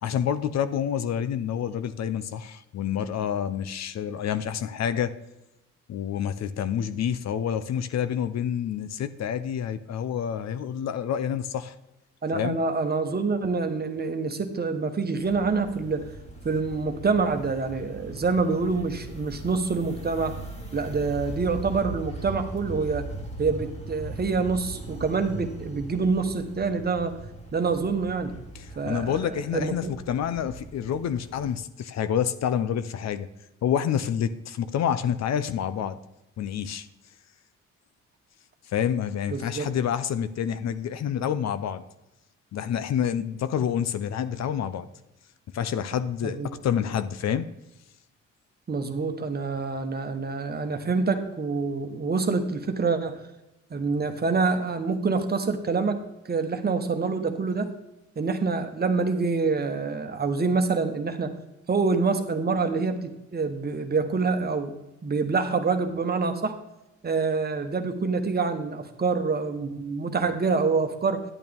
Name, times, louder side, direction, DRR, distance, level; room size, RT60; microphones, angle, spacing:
voice 1, 0.0-5.1 5.9-11.7 12.3-12.6 28.5-33.3 33.6-36.0 36.4-36.9 38.7-41.8 42.5-44.9 45.5-47.5, left 8 dB, 60° left, 11 dB, 0.6 m, -28 dB
voice 2, 12.2-16.1 16.4-20.4 20.7-23.1 23.4-27.2 27.5-28.3 28.8-29.9 39.3-39.7 46.2-46.6 48.7-53.2 53.7-56.0 56.3-57.7 58.2-61.3 61.7-64.7 65.0-66.6 67.0-71.2, right 4 dB, 30° right, 7 dB, 1.2 m, -26 dB
sound 1, 15.2-31.5, right 2 dB, 20° left, 2.0 m, -40 dB
11.0 x 8.4 x 3.5 m, 0.94 s
cardioid pair, 90°, 30 cm